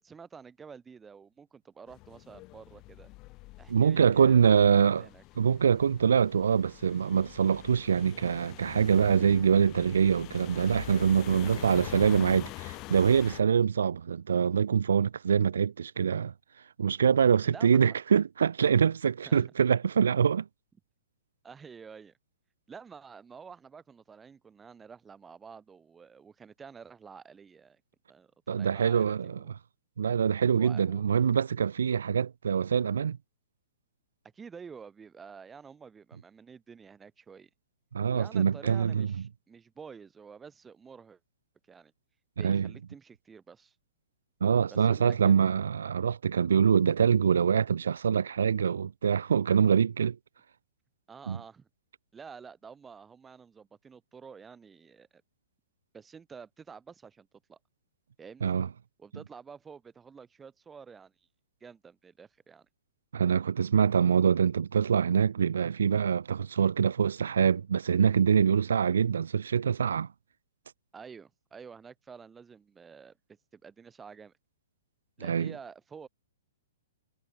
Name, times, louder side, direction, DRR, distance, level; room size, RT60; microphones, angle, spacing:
voice 1, 0.0-3.1 3.6-5.2 17.4-18.0 19.2-19.5 21.4-22.2 22.7-27.8 28.1-29.5 30.6-31.0 34.3-37.5 38.1-41.2 41.7-41.9 42.4-43.7 44.7-45.3 51.1-51.7 52.1-55.2 55.9-57.6 58.2-58.5 59.0-61.1 61.6-62.7 70.9-73.2 73.5-74.3 75.2-76.1, right 6 dB, 15° right, 3.0 m, -49 dB
sound 1, 1.9-13.4, left 22 dB, 35° left, 1.9 m, -45 dB
voice 2, 3.7-5.0 5.4-16.3 16.8-20.4 28.5-29.4 30.0-33.2 37.9-39.1 42.4-42.7 44.4-50.2 51.3-51.4 58.4-58.7 63.1-70.1 75.2-75.5, right 7 dB, 70° right, 0.7 m, -24 dB
hypercardioid pair, 115°, 0 cm